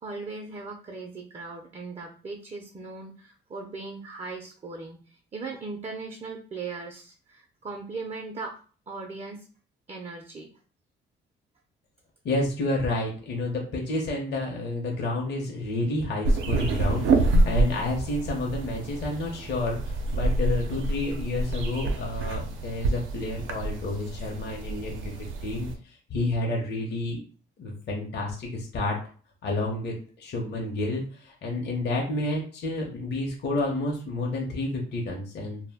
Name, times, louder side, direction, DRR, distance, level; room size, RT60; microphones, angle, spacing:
voice 1, 0.0-8.6 8.9-9.5 9.9-10.5, right 3 dB, 30° right, 2 dB, 0.4 m, -38 dB
voice 2, 12.2-25.1 25.4-27.2 27.6-29.0 29.4-35.6, left 2 dB, 55° left, 0 dB, 0.7 m, -30 dB
sound 1, 16.2-25.8, right 2 dB, 85° right, 0.5 m, -27 dB
2.2 x 2.1 x 3.4 m, 0.41 s
cardioid pair, 90°, 20 cm